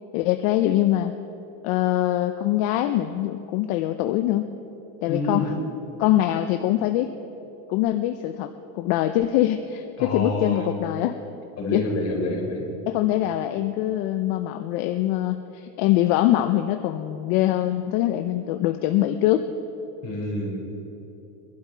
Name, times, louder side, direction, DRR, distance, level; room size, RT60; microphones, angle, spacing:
voice 1, 0.1-1.1 1.6-4.5 5.0-5.5 6.0-7.2 7.7-8.5 8.8-11.1 11.7-11.8 12.9-19.5, left 13 dB, 65° left, 8 dB, 0.8 m, -23 dB
voice 2, 5.1-5.6 10.0-10.7 11.6-12.6 20.0-20.6, left 2 dB, 35° left, -2 dB, 4.1 m, -27 dB
23.0 x 12.0 x 4.5 m, 3.0 s
supercardioid pair, 135°, 45 cm